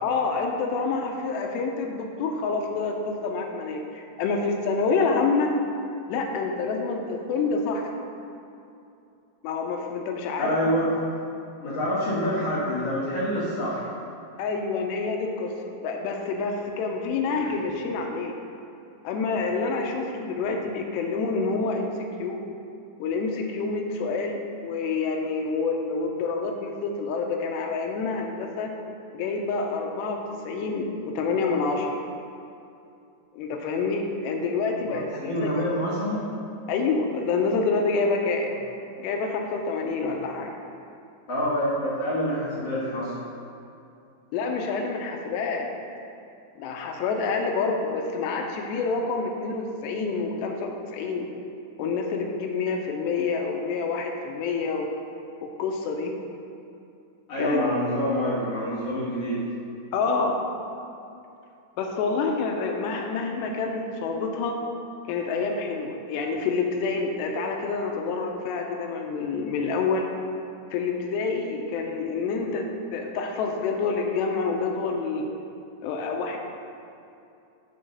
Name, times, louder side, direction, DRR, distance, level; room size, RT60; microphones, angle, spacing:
voice 1, 0.0-5.6 6.1-7.9 9.4-10.6 14.4-15.5 15.8-18.4 19.0-21.9 22.2-22.4 23.0-28.7 29.1-30.2 30.5-31.9 33.3-35.6 36.7-38.5 39.0-40.5 44.3-45.7 46.6-51.3 51.8-54.9 55.4-56.1 57.4-57.6 59.9-60.4 61.8-64.6 65.1-70.1 70.7-75.3 75.8-76.4, left 4 dB, 85° left, 2 dB, 2.7 m, -27 dB
voice 2, 10.4-10.9 11.6-13.9 34.9-36.2 41.3-43.1 57.3-59.4, equal, 55° left, -8 dB, 1.9 m, -26 dB
7.7 x 4.7 x 6.6 m, 2.7 s
omnidirectional pair, 5.1 m